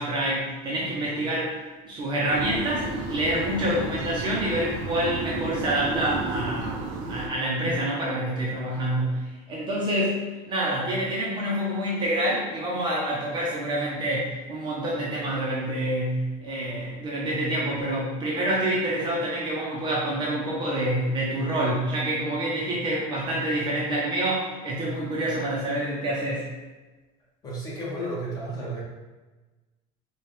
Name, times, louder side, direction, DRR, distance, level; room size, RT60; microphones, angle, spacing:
voice 1, 0.0-26.5, right 1 dB, 25° right, -5 dB, 0.7 m, -27 dB
sound 1, 2.3-7.3, right 3 dB, 65° right, 0.7 m, -32 dB
voice 2, 27.4-28.8, right 1 dB, 20° left, -6 dB, 1.1 m, -32 dB
4.6 x 2.4 x 3.2 m, 1.2 s
cardioid pair, 160°, 18 cm